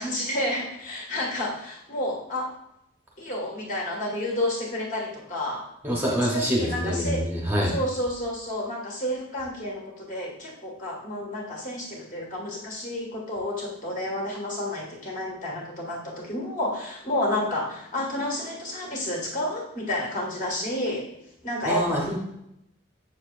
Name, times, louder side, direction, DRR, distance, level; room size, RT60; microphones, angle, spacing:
voice 1, 0.0-2.5 3.2-5.7 6.2-7.3 7.6-21.1 21.4-22.2, left 1 dB, 40° left, -2 dB, 1.7 m, -30 dB
voice 2, 5.8-7.7 21.7-22.2, equal, 10° right, -3 dB, 0.8 m, -25 dB
7.0 x 6.6 x 2.5 m, 0.82 s
head